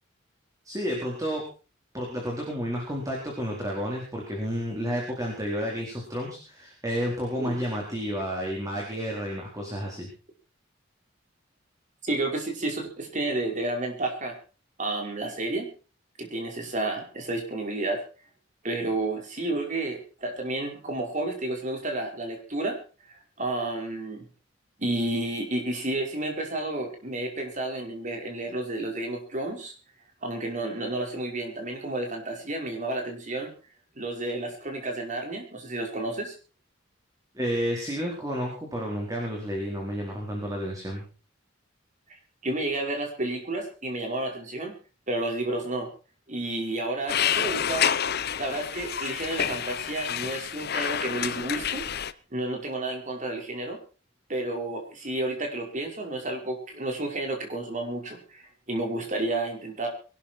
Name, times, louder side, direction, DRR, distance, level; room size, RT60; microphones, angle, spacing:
voice 1, 0.6-1.4 1.9-10.1 37.3-41.0, equal, 20° right, -1 dB, 4.3 m, -31 dB
voice 2, 12.0-14.3 14.8-15.7 16.2-18.0 18.6-22.8 23.1-24.2 24.8-29.7 30.2-33.5 34.0-36.3 42.4-44.7 45.1-45.9 46.3-47.9 48.4-51.8 52.3-53.8 54.3-59.9, right 2 dB, 40° right, 2 dB, 5.0 m, -31 dB
sound 1, 47.1-52.1, left 9 dB, 55° left, 0.8 m, -28 dB
22.0 x 12.5 x 4.5 m, 0.36 s
head